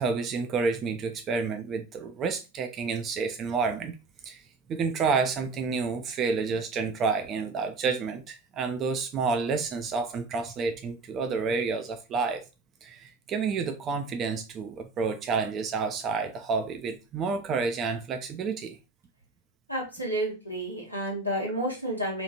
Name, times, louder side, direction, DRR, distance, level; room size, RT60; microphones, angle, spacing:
voice 1, 0.0-3.9 4.2-4.4 4.7-12.4 12.8-18.8, right 4 dB, 30° right, 0.3 m, -29 dB
voice 2, 19.7-22.2, right 1 dB, 90° right, 1.1 m, -30 dB
2.8 x 2.4 x 2.7 m
figure-of-eight pair, 90°, 0 cm